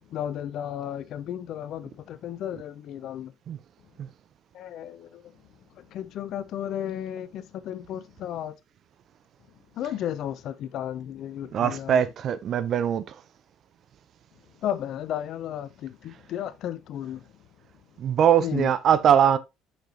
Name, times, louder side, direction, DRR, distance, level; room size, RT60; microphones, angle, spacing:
voice 1, 0.1-3.3 4.5-5.2 5.8-8.5 9.8-12.0 14.6-17.2 18.4-18.7, left 10 dB, 60° left, 0.6 m, -33 dB
voice 2, 11.5-13.1 18.0-19.4, right 9 dB, 50° right, 0.7 m, -22 dB
6.8 x 6.0 x 2.9 m
hypercardioid pair, 65°, 0 cm